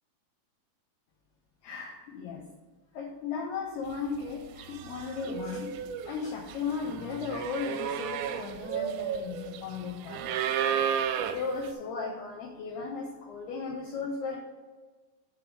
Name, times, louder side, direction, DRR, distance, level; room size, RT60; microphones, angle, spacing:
voice 1, 1.6-2.5 2.9-5.7 6.0-10.4 11.2-14.4, left 5 dB, 85° left, -2 dB, 2.3 m, -36 dB
sound 1, 4.2-4.3 4.6-11.7, right 8 dB, 85° right, 3.2 m, -33 dB
9.5 x 3.6 x 6.5 m, 1.3 s
omnidirectional pair, 5.8 m